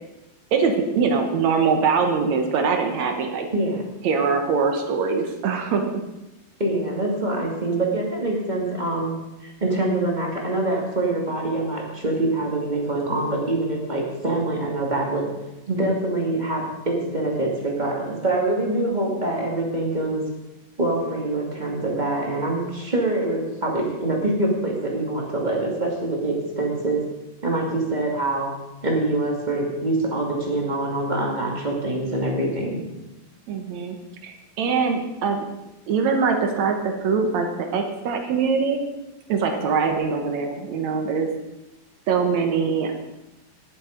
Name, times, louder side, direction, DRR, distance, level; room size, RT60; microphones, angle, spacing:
voice 1, 0.5-3.5 4.0-5.8 33.5-34.0 34.2-35.5 35.9-38.8 39.3-41.3 42.1-42.9, right 5 dB, 70° right, 5 dB, 1.8 m, -23 dB
voice 2, 6.6-9.2 9.4-15.3 15.7-20.2 20.8-27.0 27.4-28.5 28.8-32.8, right 2 dB, 15° right, -1 dB, 1.4 m, -25 dB
19.0 x 7.6 x 5.2 m, 0.99 s
omnidirectional pair, 4.7 m